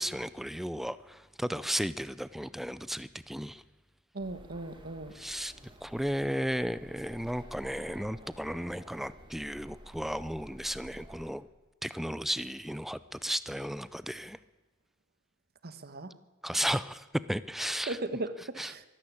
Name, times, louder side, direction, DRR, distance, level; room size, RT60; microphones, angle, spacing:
voice 1, 0.0-3.6 5.1-5.5 5.8-11.5 11.8-14.4 16.4-18.0 18.6-18.9, equal, ahead, 16 dB, 0.5 m, -34 dB
voice 2, 4.1-5.1 15.6-16.1 17.9-18.8, right 2 dB, 45° right, 11 dB, 1.3 m, -37 dB
sound 1, 4.2-11.3, equal, 25° right, 2.7 m, -52 dB
24.0 x 13.0 x 8.6 m, 1.2 s
head